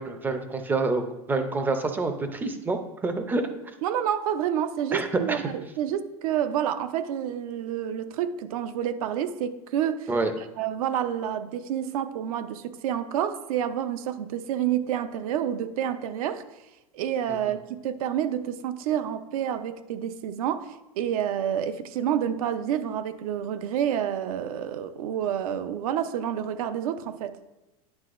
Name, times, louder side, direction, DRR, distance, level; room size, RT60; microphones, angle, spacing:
voice 1, 0.0-3.5 4.9-5.4 10.1-10.3 17.3-17.4, right 3 dB, 10° right, 7 dB, 0.5 m, -27 dB
voice 2, 3.8-10.1 10.6-16.4 16.9-17.6 17.8-27.4, right 9 dB, 70° right, 11 dB, 0.6 m, -28 dB
9.6 x 5.9 x 2.5 m, 1.0 s
supercardioid pair, 150°, 19 cm